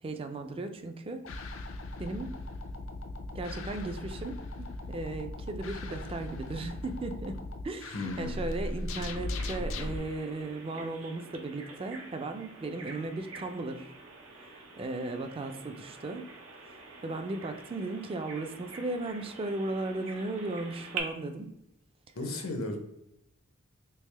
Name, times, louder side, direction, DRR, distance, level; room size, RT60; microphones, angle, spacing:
voice 1, 0.0-1.3 2.0-2.4 3.3-7.4 7.6-13.9 14.3-16.2 16.6-21.5, right 2 dB, 25° right, 7 dB, 0.3 m, -36 dB
sound 1, 1.2-10.0, left 2 dB, 70° left, 0.4 m, -38 dB
voice 2, 7.9-8.3 22.2-22.8, left 2 dB, 85° left, 4 dB, 0.8 m, -34 dB
Bird vocalization bird call bird song, 9.2-21.0, right 4 dB, 85° right, 0.7 m, -46 dB
3.4 x 2.8 x 3.2 m, 0.80 s
head